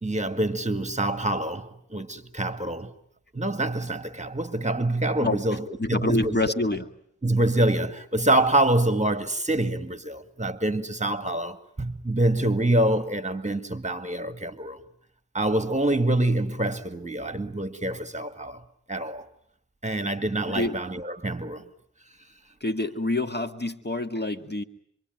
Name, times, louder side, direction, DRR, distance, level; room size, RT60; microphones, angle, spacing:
voice 1, 0.0-2.9 3.3-6.4 7.2-14.8 15.3-18.6 18.9-19.3 19.8-21.6, right 1 dB, 25° right, 2.0 m, -26 dB
voice 2, 5.8-6.8 20.5-20.8 22.6-24.6, left 2 dB, 35° left, 1.9 m, -27 dB
27.0 x 24.0 x 9.2 m
cardioid pair, 40°, 30 cm